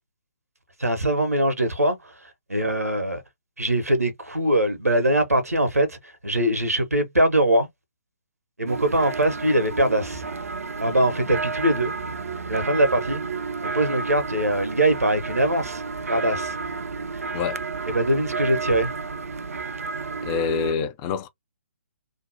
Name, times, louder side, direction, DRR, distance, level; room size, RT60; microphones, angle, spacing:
voice 1, 0.8-3.2 3.6-7.7 8.6-10.2 10.8-11.9 12.5-13.2 13.6-15.8 16.1-16.6 17.1-17.2 17.9-18.9, right 1 dB, 85° right, 0.8 m, -22 dB
sound 1, 8.7-20.7, right 4 dB, 70° right, 0.4 m, -31 dB
voice 2, 20.2-21.3, left 6 dB, 20° left, 0.4 m, -26 dB
2.8 x 2.1 x 2.6 m
figure-of-eight pair, 135°, 8 cm